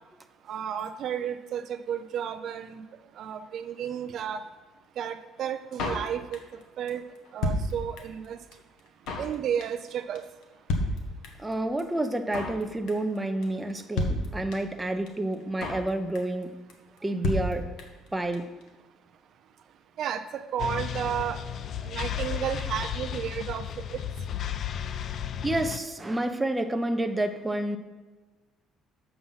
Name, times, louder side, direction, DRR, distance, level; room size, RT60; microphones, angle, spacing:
voice 1, 0.5-2.8 3.2-4.4 5.0-6.4 6.8-7.0 7.3-8.4 9.2-10.2 20.0-21.4 21.9-23.6 23.9-24.0, right 9 dB, 55° right, 9 dB, 0.5 m, -32 dB
Drum kit, 5.8-6.6 6.9-7.0 7.2-8.3 8.5-8.6 8.8-9.3 9.6-9.9 10.2-10.3 10.4-10.5 10.7-11.5 11.8-11.9 12.1-12.6 12.9-13.2 13.4-13.5 13.7-13.8 14.0-14.8 15.1-15.2 15.3-15.9 16.2-16.4 16.7-16.8 17.0-17.1 17.2-18.1 18.3-18.4 18.6-18.7, left 1 dB, 80° left, 1.3 m, -30 dB
voice 2, 11.4-16.5 17.0-17.7 18.1-18.5 25.4-27.8, right 1 dB, 10° right, 6 dB, 0.6 m, -29 dB
sound 1, 20.6-25.8, left 9 dB, 50° left, 0.3 m, -33 dB
7.6 x 5.9 x 5.6 m, 1.2 s
cardioid pair, 135°, 0 cm